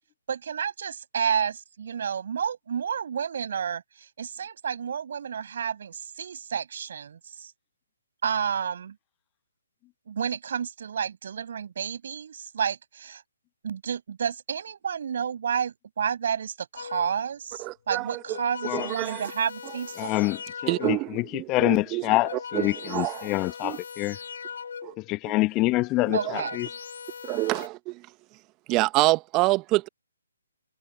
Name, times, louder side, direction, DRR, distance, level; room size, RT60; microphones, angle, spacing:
voice 1, 0.3-7.5 8.2-9.0 10.1-13.2 13.6-20.1 26.1-26.6, right 7 dB, 55° right, 6.3 m, -30 dB
sound 1, 16.8-17.3 18.0-21.2 21.9-25.1 25.8-27.7, left 6 dB, 60° left, 4.4 m, -40 dB
voice 2, 17.6-18.2 18.7-19.2 20.7-22.0 22.5-23.3 23.6-23.8 24.8-24.9 25.3-25.4 26.2-26.3 27.2-28.0 28.7-29.9, right 21 dB, 25° right, 1.4 m, -27 dB
voice 3, 20.0-24.2 25.0-26.7, left 20 dB, 25° left, 1.2 m, -26 dB
figure-of-eight pair, 140°, 0 cm